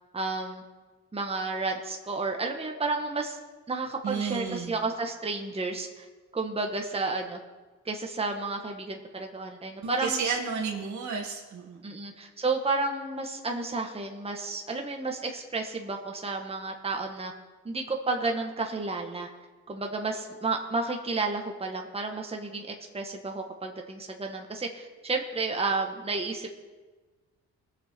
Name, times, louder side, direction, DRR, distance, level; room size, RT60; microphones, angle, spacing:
voice 1, 0.1-0.6 1.1-3.4 3.7-6.0 6.3-7.4 7.8-10.2 11.8-17.3 17.6-19.3 19.7-26.6, right 3 dB, 20° right, 2 dB, 1.4 m, -31 dB
voice 2, 4.0-4.8 9.8-11.9, right 5 dB, 70° right, 1 dB, 2.5 m, -32 dB
20.5 x 7.4 x 4.4 m, 1.3 s
cardioid pair, 90°, 30 cm